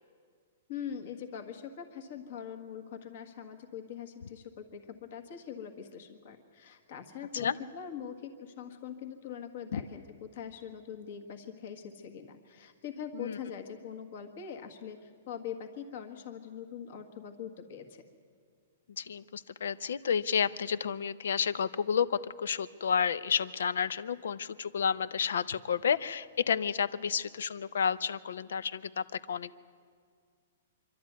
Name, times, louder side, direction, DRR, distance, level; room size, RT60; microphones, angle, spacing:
voice 1, 0.7-18.0, left 8 dB, 40° left, 6 dB, 1.6 m, -43 dB
voice 2, 19.0-29.6, left 7 dB, 70° left, 17 dB, 0.6 m, -31 dB
26.0 x 12.0 x 9.4 m, 2.1 s
hypercardioid pair, 175°, 0 cm